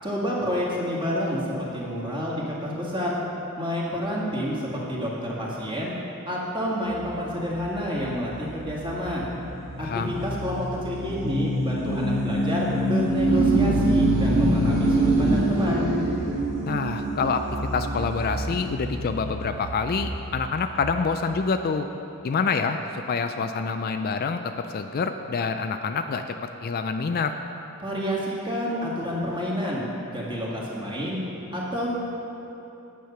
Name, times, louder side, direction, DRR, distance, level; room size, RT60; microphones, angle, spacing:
voice 1, 0.0-3.2 3.6-5.9 6.3-9.2 9.8-15.9 27.8-29.8 30.1-31.2 31.5-31.9, equal, 25° right, -5 dB, 1.9 m, -29 dB
sound 1, 6.9-21.0, right 1 dB, 85° right, 2.3 m, -26 dB
voice 2, 9.8-10.1 16.6-17.4 17.7-21.9 22.2-26.2 26.6-27.3, left 5 dB, 45° left, 7 dB, 0.4 m, -27 dB
9.4 x 8.3 x 5.8 m, 3.0 s
head